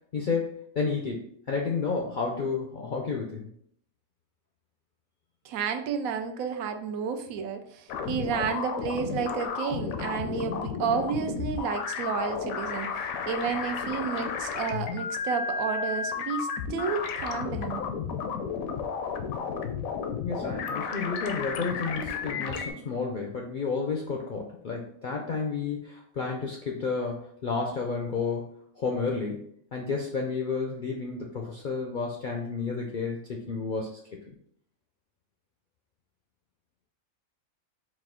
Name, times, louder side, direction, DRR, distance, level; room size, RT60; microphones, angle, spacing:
voice 1, 0.1-0.5 0.7-3.5 20.2-28.5 28.8-34.0 34.3-34.4, left 4 dB, 65° left, 0 dB, 0.5 m, -31 dB
voice 2, 5.4-17.8, right 6 dB, 85° right, 6 dB, 1.0 m, -31 dB
sound 1, 7.9-22.7, left 6 dB, 85° left, 1.0 m, -33 dB
4.1 x 2.4 x 3.6 m, 0.66 s
omnidirectional pair, 1.4 m